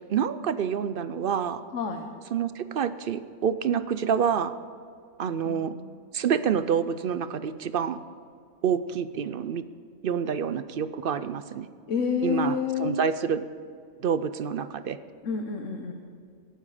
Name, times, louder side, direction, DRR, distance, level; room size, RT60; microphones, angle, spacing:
voice 1, 0.1-1.6 2.3-4.5 5.2-5.7 6.1-8.0 8.6-9.6 10.0-11.7 12.2-13.4 14.0-15.0, right 7 dB, 55° right, 12 dB, 0.7 m, -27 dB
voice 2, 1.7-2.0 5.4-5.7 11.9-13.0 15.2-15.9, left 5 dB, 75° left, 4 dB, 1.4 m, -28 dB
25.5 x 9.2 x 4.9 m, 2.2 s
omnidirectional pair, 1.3 m